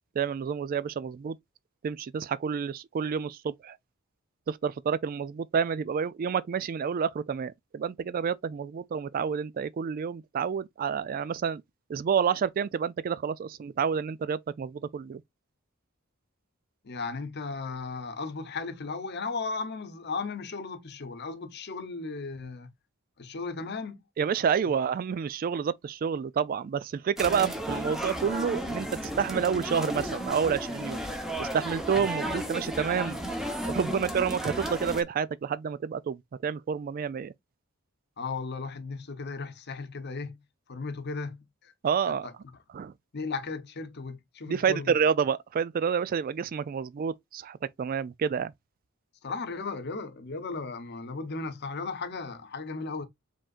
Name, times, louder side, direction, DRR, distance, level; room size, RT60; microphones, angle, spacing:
voice 1, 0.2-1.4 1.8-3.8 4.5-11.6 11.9-15.2 24.2-28.9 29.2-31.0 31.4-33.2 33.7-37.3 41.8-42.3 42.7-42.9 44.5-48.5, right 7 dB, 45° right, 0.3 m, -29 dB
voice 2, 16.8-22.7 23.2-24.0 24.6-24.7 38.2-40.4 40.7-41.7 42.1-42.3 43.1-44.9 49.2-53.1, left 4 dB, 55° left, 0.8 m, -36 dB
sound 1, 27.2-35.0, equal, ahead, 0.9 m, -34 dB
5.2 x 3.6 x 2.4 m
head